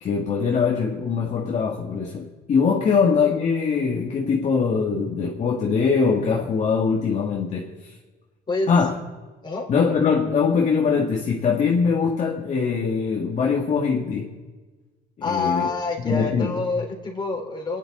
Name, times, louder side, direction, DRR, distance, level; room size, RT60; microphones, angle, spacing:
voice 1, 0.0-7.9 8.7-8.9 9.7-14.3 15.2-15.7 16.0-16.6, left 5 dB, 45° left, 1.7 m, -22 dB
voice 2, 15.2-17.8, left 3 dB, 25° left, 3.6 m, -27 dB
26.0 x 10.0 x 3.8 m
cardioid pair, 110°, 17 cm